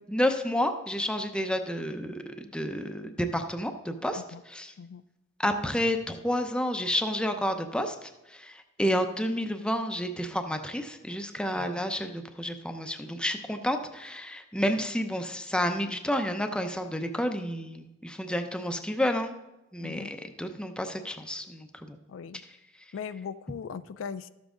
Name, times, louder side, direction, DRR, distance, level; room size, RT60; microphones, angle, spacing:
voice 1, 0.1-4.7 5.4-19.4 19.7-22.0, equal, 5° left, 6 dB, 0.6 m, -30 dB
voice 2, 19.8-20.1 22.1-22.4 22.9-24.3, left 6 dB, 75° left, 14 dB, 0.3 m, -39 dB
13.0 x 7.2 x 3.8 m, 0.97 s
head